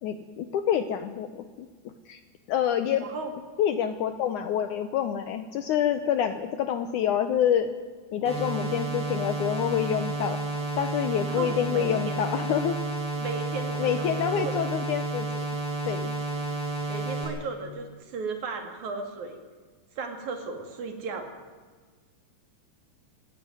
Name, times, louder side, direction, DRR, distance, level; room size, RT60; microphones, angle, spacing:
voice 1, 0.0-1.7 2.1-2.2 2.5-3.1 3.6-7.7 8.1-10.4 10.8-12.8 13.8-15.5 15.9-16.2, left 9 dB, 70° left, 10 dB, 2.0 m, -27 dB
voice 2, 3.0-3.3 11.3-12.2 13.2-14.7 16.9-19.4 19.9-21.3, right 4 dB, 55° right, 5 dB, 3.4 m, -35 dB
sound 1, 8.2-17.2, right 2 dB, ahead, 6.8 m, -31 dB
17.5 x 17.0 x 9.5 m, 1.5 s
omnidirectional pair, 4.3 m